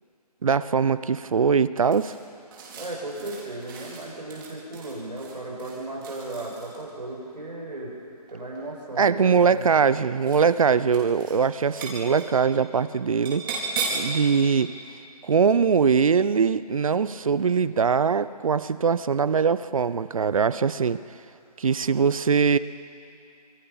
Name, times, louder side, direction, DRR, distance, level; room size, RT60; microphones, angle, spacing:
voice 1, 0.4-2.1 9.0-13.5 13.9-14.7 15.2-21.0 21.6-22.6, right 6 dB, 55° right, 16 dB, 0.8 m, -22 dB
sound 1, 1.9-6.9 8.1-8.8 9.5-9.9 10.2-10.6 10.9-11.4 11.6-12.3 13.3-14.1, right 4 dB, 35° right, 4.6 m, -36 dB
voice 2, 2.8-8.0 8.3-9.8, right 2 dB, 85° right, -2 dB, 6.8 m, -36 dB
26.5 x 22.5 x 5.8 m, 2.6 s
figure-of-eight pair, 155°, 21 cm